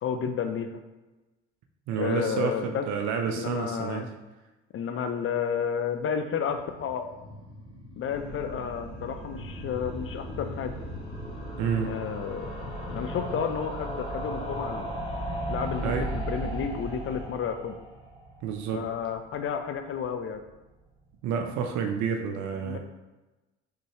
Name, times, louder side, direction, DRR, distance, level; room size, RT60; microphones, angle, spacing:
voice 1, 0.0-0.7 2.0-2.9 3.3-4.1 4.7-7.1 8.0-10.8 11.8-12.5 12.9-14.9 15.5-17.8 18.7-20.4 22.6-22.8, left 7 dB, 40° left, 7 dB, 0.5 m, -31 dB
voice 2, 1.9-4.1 11.6-11.9 15.8-16.1 18.4-18.9 21.2-22.8, right 6 dB, 55° right, 4 dB, 0.6 m, -29 dB
sound 1, 6.4-19.4 19.7-19.8 20.0-20.1 20.3-20.4, right 1 dB, 15° left, 1.3 m, -37 dB
sound 2, 8.1-17.3, left 1 dB, 80° left, 0.9 m, -45 dB
5.2 x 3.3 x 2.9 m, 1.1 s
hypercardioid pair, 55°, 34 cm